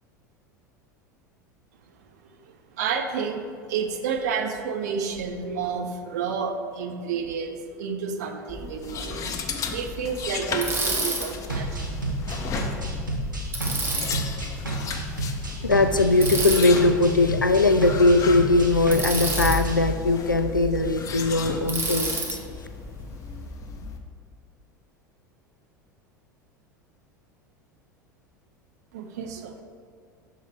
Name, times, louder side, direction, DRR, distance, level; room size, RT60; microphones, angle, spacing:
voice 1, 2.3-11.9 28.9-29.6, right 6 dB, 60° right, 6 dB, 0.6 m, -30 dB
sound 1, 8.5-24.0, left 4 dB, 30° left, 0.6 m, -34 dB
Bicycle, 10.6-11.3 13.5-14.2 16.2-16.7 18.9-19.6 21.7-22.4, right 3 dB, 20° right, 1.2 m, -28 dB
sound 2, 11.5-19.8, right 2 dB, 80° right, 1.0 m, -31 dB
voice 2, 15.6-22.4, left 2 dB, 90° left, 9 dB, 0.4 m, -20 dB
6.4 x 4.6 x 4.7 m, 2.2 s
figure-of-eight pair, 80°, 10 cm